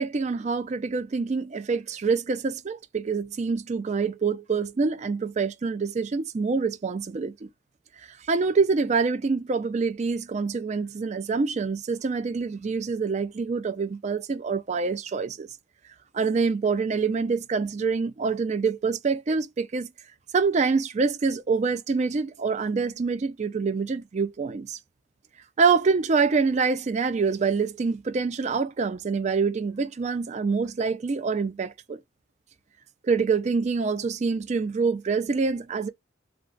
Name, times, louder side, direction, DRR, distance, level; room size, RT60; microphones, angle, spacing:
voice 1, 0.0-7.5 8.1-15.5 16.1-19.9 20.3-24.8 25.6-32.0 33.0-35.9, right 4 dB, 35° right, 0.4 m, -26 dB
2.3 x 2.3 x 3.7 m
head